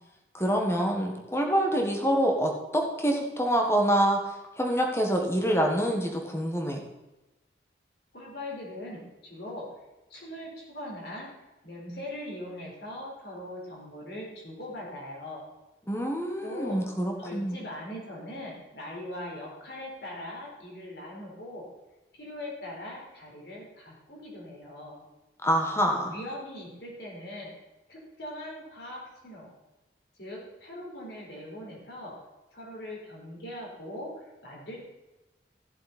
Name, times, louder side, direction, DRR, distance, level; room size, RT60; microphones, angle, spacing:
voice 1, 0.3-4.2 4.6-6.8 15.9-17.6 25.4-26.1, equal, 15° left, 2 dB, 1.5 m, -26 dB
voice 2, 8.1-9.7 10.1-11.3 11.6-15.4 16.4-16.8 17.2-21.7 22.1-25.0 26.1-27.5 27.9-29.5 30.2-32.1 32.5-34.8, left 1 dB, 65° left, -3 dB, 4.2 m, -40 dB
15.0 x 7.5 x 4.3 m, 1.0 s
head